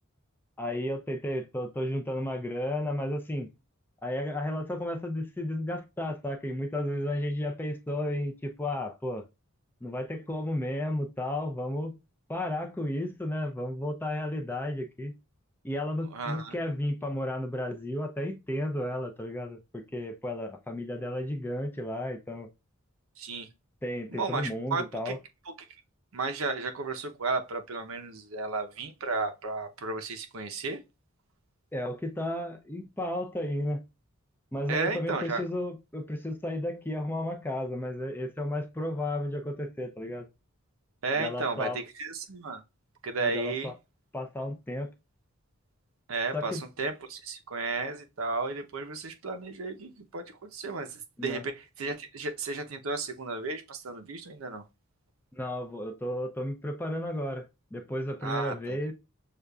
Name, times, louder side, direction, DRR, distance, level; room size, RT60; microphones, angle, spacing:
voice 1, 0.6-3.5 4.0-9.2 9.8-12.0 12.3-15.1 15.6-22.5 23.8-25.2 31.7-33.8 34.5-40.3 41.2-41.8 43.2-43.7 44.1-44.9 46.3-46.6 51.2-51.4 55.4-58.9, left 1 dB, 10° left, 0.4 m, -33 dB
voice 2, 16.1-16.6 23.2-23.5 24.1-25.2 26.1-30.8 34.7-35.4 41.0-42.6 43.0-43.7 46.1-51.5 51.8-54.6 58.2-58.8, right 3 dB, 70° right, 0.7 m, -33 dB
6.5 x 2.4 x 2.3 m
head